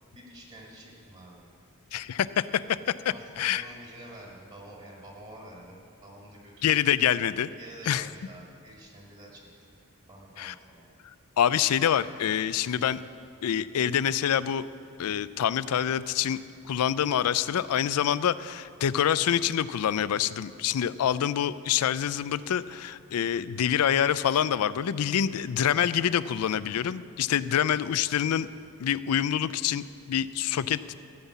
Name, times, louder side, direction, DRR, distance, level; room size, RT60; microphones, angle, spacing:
voice 1, 0.1-1.5 3.1-3.2 3.5-6.8 7.6-9.4 10.1-10.9, right 1 dB, 30° right, -2 dB, 1.9 m, -48 dB
voice 2, 1.9-2.8 3.0-3.7 6.6-7.5 7.9-8.1 10.4-10.5 11.4-13.0 13.4-14.7 15.0-16.4 16.7-28.5 28.8-30.9, left 9 dB, 90° left, 16 dB, 0.4 m, -26 dB
14.0 x 5.6 x 8.2 m, 2.4 s
head